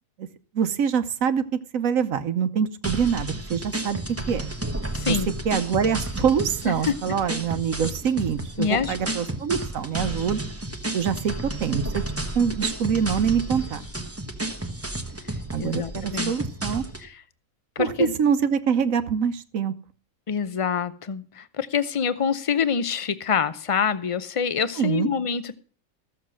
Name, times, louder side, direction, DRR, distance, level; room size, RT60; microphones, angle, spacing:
voice 1, 0.5-1.4 1.7-4.5 5.1-5.2 5.4-10.4 10.9-12.0 12.3-13.8 15.5-16.8 17.8-19.7 24.8-25.1, right 7 dB, 70° right, 12 dB, 1.2 m, -25 dB
sound 1, 2.8-17.1, right 1 dB, 10° right, 1.0 m, -32 dB
voice 2, 4.9-5.3 6.6-6.9 8.6-9.0 15.6-16.3 17.0-17.2 17.8-18.1 20.3-25.6, left 6 dB, 40° left, 14 dB, 0.5 m, -26 dB
14.0 x 7.2 x 6.2 m, 0.42 s
omnidirectional pair, 1.5 m